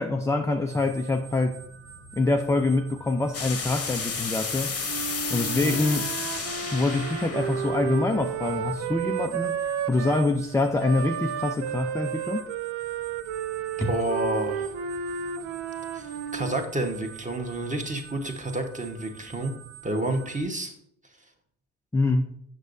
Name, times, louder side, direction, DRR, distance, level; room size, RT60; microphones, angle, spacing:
voice 1, 0.0-1.7 2.2-4.8 5.3-6.1 6.7-12.5 13.8-13.9 21.9-22.4, left 2 dB, 5° left, 4 dB, 0.4 m, -25 dB
sound 1, 0.7-20.4, right 7 dB, 85° right, 1.4 m, -47 dB
sound 2, 3.3-9.0, left 5 dB, 30° left, 0.9 m, -33 dB
Wind instrument woodwind instrument, 4.8-10.3 10.8-16.6, right 8 dB, 65° right, 0.6 m, -32 dB
voice 2, 13.8-14.7 15.9-19.5 19.8-20.7, right 1 dB, 15° right, 3 dB, 1.2 m, -30 dB
6.3 x 6.0 x 2.6 m, 0.72 s
hypercardioid pair, 55°, 46 cm